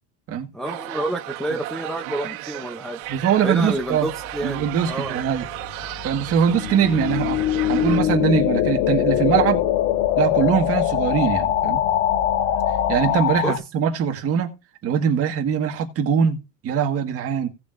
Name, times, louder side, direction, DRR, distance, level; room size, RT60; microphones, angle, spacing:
voice 1, 0.5-3.0 3.4-5.2 13.4-13.5, right 1 dB, ahead, 0.6 m, -28 dB
sound 1, 0.7-8.0, right 17 dB, 80° right, 1.4 m, -35 dB
voice 2, 3.1-4.1 4.4-5.5 6.0-7.4 7.7-9.6 10.2-11.8 12.9-14.5 14.8-17.5, right 8 dB, 35° right, 1.6 m, -22 dB
sound 2, 4.3-13.6, left 11 dB, 75° left, 1.5 m, -22 dB
17.5 x 6.7 x 2.6 m
cardioid pair, 165°, 42 cm